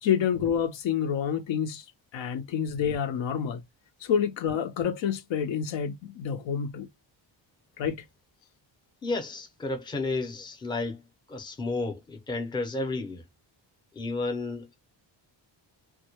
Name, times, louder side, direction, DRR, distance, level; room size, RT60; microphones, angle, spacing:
voice 1, 0.0-1.8 2.1-3.6 4.0-6.9 7.8-8.0, left 8 dB, 80° left, 0.7 m, -28 dB
voice 2, 9.0-11.0 11.3-13.2 13.9-14.8, left 3 dB, 10° left, 0.5 m, -32 dB
2.1 x 2.1 x 2.8 m
wide cardioid pair, 170°, 45 cm